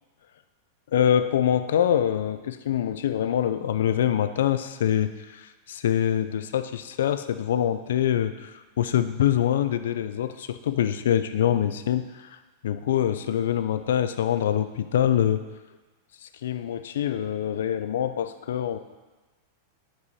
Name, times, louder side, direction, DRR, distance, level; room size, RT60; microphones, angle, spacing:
voice 1, 0.9-15.4 16.4-18.8, left 10 dB, 85° left, 11 dB, 0.5 m, -25 dB
10.0 x 4.8 x 4.2 m, 1.2 s
supercardioid pair, 175°, 0 cm